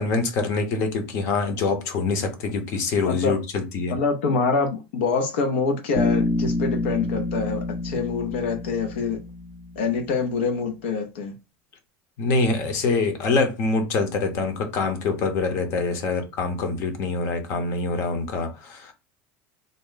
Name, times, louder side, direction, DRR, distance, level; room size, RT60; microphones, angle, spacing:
voice 1, 0.0-3.9 12.2-18.9, left 3 dB, 50° left, 0.9 m, -25 dB
voice 2, 3.1-3.4 3.9-9.2 9.8-11.3, left 4 dB, 85° left, 0.7 m, -25 dB
Bass guitar, 5.9-10.0, left 2 dB, 20° left, 0.6 m, -27 dB
3.7 x 2.1 x 3.8 m
supercardioid pair, 145°, 6 cm